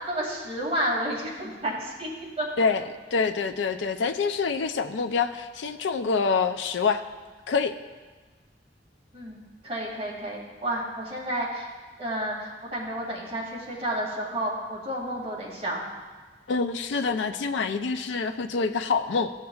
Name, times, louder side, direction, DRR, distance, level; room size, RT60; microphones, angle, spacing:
voice 1, 0.1-2.1 2.4-2.5 9.1-11.7 12.0-15.8, right 1 dB, 35° right, -4 dB, 2.2 m, -31 dB
voice 2, 3.1-7.0 7.5-7.7 16.5-19.3, left 5 dB, 80° left, 7 dB, 0.4 m, -26 dB
14.5 x 6.5 x 2.3 m, 1.4 s
head